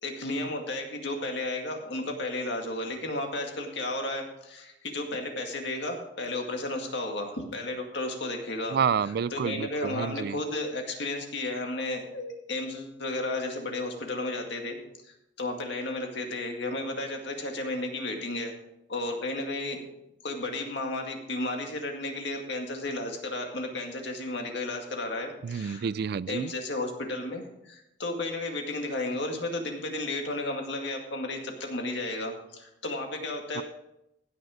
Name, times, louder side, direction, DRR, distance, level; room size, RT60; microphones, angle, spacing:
voice 1, 0.0-8.8 9.3-14.8 15.1-18.6 18.9-19.8 20.2-25.9 26.3-33.6, left 2 dB, 65° left, 3 dB, 2.1 m, -33 dB
voice 2, 8.7-10.4 25.4-26.5 33.5-33.6, right 7 dB, 55° right, 19 dB, 0.3 m, -29 dB
16.0 x 6.5 x 5.0 m, 0.85 s
head